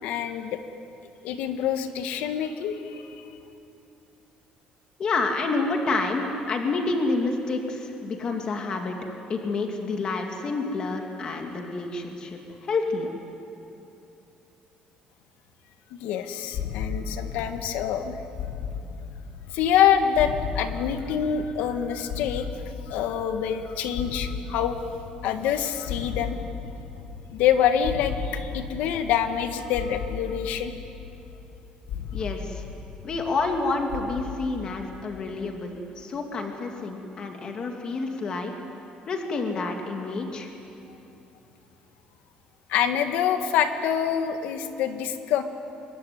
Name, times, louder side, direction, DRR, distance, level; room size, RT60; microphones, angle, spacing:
voice 1, 0.0-0.6 1.2-3.3 15.9-18.1 19.5-22.5 22.9-24.8 25.2-26.4 27.3-30.7 42.7-45.4, left 9 dB, 80° left, 7 dB, 1.9 m, -26 dB
voice 2, 5.0-9.0 9.3-13.1 32.1-32.6 33.0-38.5 39.1-40.5, left 3 dB, 30° left, 3 dB, 2.5 m, -28 dB
sound 1, 16.5-35.4, left 6 dB, 55° left, 1.7 m, -36 dB
26.0 x 22.0 x 9.8 m, 2.9 s
cardioid pair, 170°, 3 cm